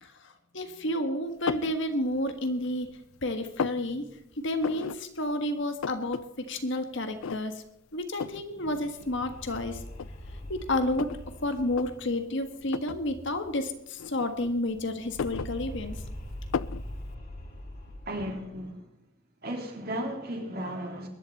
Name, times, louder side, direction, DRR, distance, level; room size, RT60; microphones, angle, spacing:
voice 1, 0.0-4.1 4.4-7.6 7.9-9.8 10.5-11.1 11.4-16.0, left 1 dB, 60° left, 1.6 m, -31 dB
sound 1, 1.5-1.8 2.3-3.0 3.2-3.8 4.6-5.0 5.3-5.4 5.6-6.2 6.6-6.7 7.2-7.7 8.2-8.5 9.3-9.4 9.9-11.3 11.7-11.9 12.7-13.0 14.0-14.7 15.0-16.0 16.5-16.8, left 6 dB, 75° left, 0.4 m, -34 dB
sound 2, 8.5-13.7 13.9-14.0 14.3-18.7, equal, 45° left, 2.9 m, -43 dB
voice 2, 18.1-18.9 19.4-21.1, right 1 dB, 45° right, 3.6 m, -35 dB
22.0 x 11.0 x 4.2 m
head